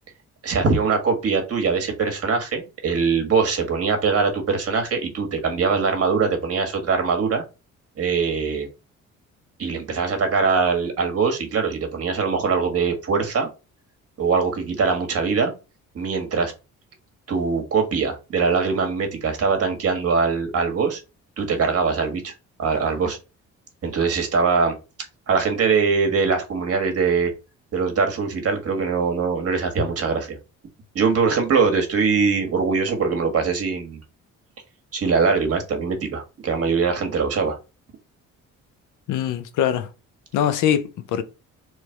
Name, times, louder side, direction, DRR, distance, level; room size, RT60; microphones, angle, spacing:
voice 1, 0.4-7.4 8.0-8.7 9.6-13.5 14.2-15.5 15.9-16.5 17.3-21.0 21.4-22.3 22.6-23.2 23.8-24.7 25.3-27.3 27.7-30.4 30.9-34.0 34.9-37.6, right 5 dB, 50° right, 1.5 m, -22 dB
voice 2, 39.1-39.9 40.3-41.2, left 9 dB, 85° left, 0.7 m, -22 dB
3.3 x 3.1 x 4.5 m
cardioid pair, 90°, 30 cm